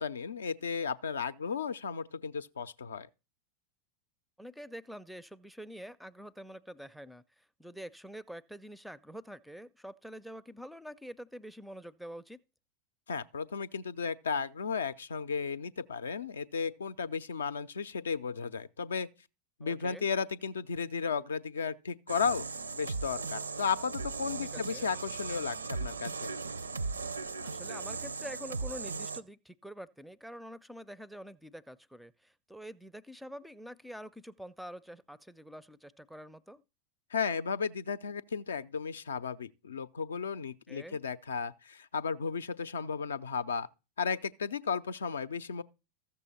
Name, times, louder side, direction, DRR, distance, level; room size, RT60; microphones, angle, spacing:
voice 1, 0.0-3.1 13.1-19.1 19.6-22.4 22.7-26.3 37.1-43.7 44.0-45.6, left 6 dB, 70° left, 0.5 m, -34 dB
voice 2, 4.4-12.4 19.6-20.1 24.5-24.9 27.4-36.6 40.7-41.0, equal, ahead, 0.4 m, -46 dB
sound 1, 22.1-29.2, right 4 dB, 75° right, 0.5 m, -37 dB
14.0 x 6.8 x 4.2 m
figure-of-eight pair, 90°, 0 cm